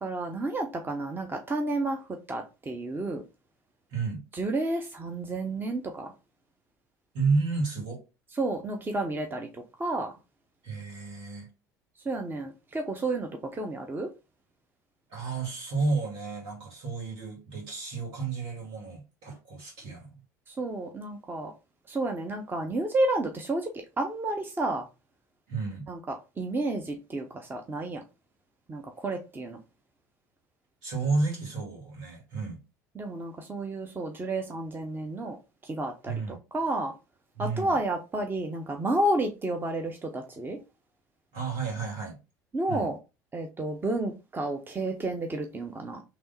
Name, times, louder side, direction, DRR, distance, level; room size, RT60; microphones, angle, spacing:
voice 1, 0.0-2.0 2.3-3.2 4.3-6.1 8.4-10.1 12.0-14.1 20.5-21.5 21.9-23.7 24.0-24.8 25.9-28.0 28.7-29.6 33.0-35.4 35.6-36.9 37.4-40.6 42.5-42.9 43.3-46.0, right 2 dB, 20° right, 0.8 m, -31 dB
voice 2, 3.9-4.2 7.1-8.0 10.6-11.5 15.1-20.2 25.5-25.9 30.8-32.6 36.0-36.4 37.4-37.7 41.3-42.2 42.7-42.9, right 4 dB, 70° right, 2.3 m, -31 dB
3.5 x 3.0 x 4.2 m
hypercardioid pair, 70°, 9 cm